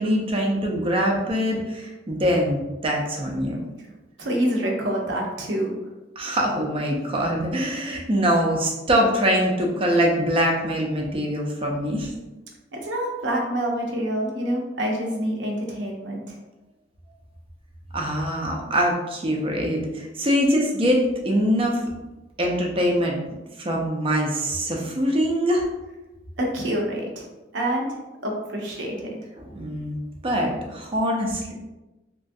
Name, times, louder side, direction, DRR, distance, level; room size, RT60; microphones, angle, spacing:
voice 1, 0.0-3.6 6.2-12.1 17.9-21.9 22.4-23.2 23.6-25.7 29.4-30.0 30.2-31.5, equal, 30° right, 0 dB, 0.5 m, -23 dB
voice 2, 4.2-5.7 12.7-16.4 26.4-27.3 27.5-27.9 28.2-29.2, right 1 dB, 90° right, 0 dB, 0.7 m, -27 dB
3.0 x 2.4 x 2.6 m, 1.1 s
head